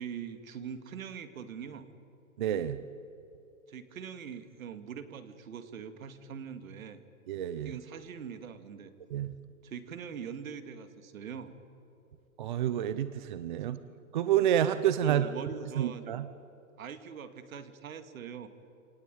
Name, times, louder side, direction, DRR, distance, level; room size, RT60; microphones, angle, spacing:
voice 1, 0.0-1.9 3.7-7.0 7.6-8.9 9.6-11.5 13.6-13.8 15.0-16.2 16.8-18.5, right 7 dB, 65° right, 10 dB, 2.3 m, -43 dB
voice 2, 2.4-2.8 7.3-7.8 9.1-9.3 12.4-13.8 14.1-15.3 15.8-16.3, right 10 dB, 35° right, 13 dB, 0.6 m, -29 dB
27.0 x 19.0 x 9.1 m, 2.9 s
hypercardioid pair, 165°, 44 cm